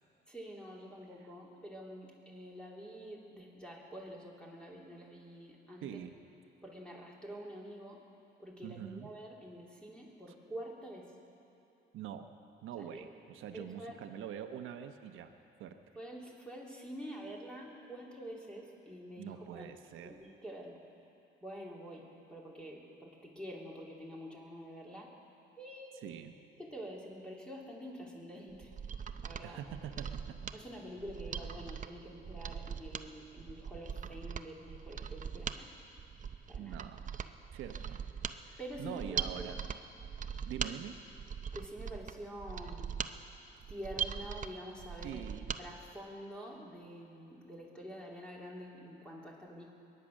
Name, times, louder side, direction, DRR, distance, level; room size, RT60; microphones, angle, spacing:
voice 1, 0.3-6.0 6.6-8.0 8.4-11.1 12.8-13.1 13.5-14.0 15.9-19.7 20.0-20.8 21.4-25.1 25.6-26.0 26.6-28.7 29.2-30.1 30.5-35.7 36.5-36.7 38.6-39.6 41.5-42.9 43.7-45.2 45.6-49.7, equal, 5° left, -3 dB, 3.0 m, -47 dB
voice 2, 5.8-6.2 8.6-9.1 11.9-12.3 12.6-15.3 15.6-15.8 19.2-20.1 26.0-26.3 29.4-30.5 36.6-37.0 37.5-38.0 38.8-39.6 40.4-41.0 45.0-45.5, right 9 dB, 85° right, 7 dB, 1.0 m, -44 dB
Mechanisms, 28.5-45.6 46.0-46.1, right 7 dB, 40° right, 0.7 m, -41 dB
22.5 x 9.7 x 6.4 m, 2.9 s
cardioid pair, 90°, 20 cm